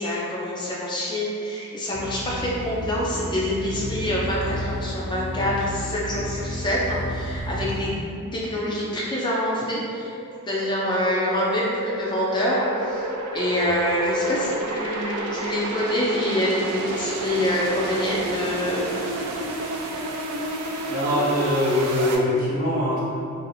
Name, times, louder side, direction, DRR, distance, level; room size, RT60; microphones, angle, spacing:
voice 1, 0.0-7.9 8.3-10.1 10.5-19.1, left 1 dB, 20° left, -6 dB, 0.4 m, -26 dB
sound 1, 1.9-7.9, equal, 80° left, 0.4 m, -32 dB
sound 2, 7.4-22.2, right 2 dB, 90° right, 0.4 m, -31 dB
voice 2, 20.9-23.0, left 1 dB, 40° right, -7 dB, 0.8 m, -22 dB
2.6 x 2.4 x 4.0 m, 2.4 s
head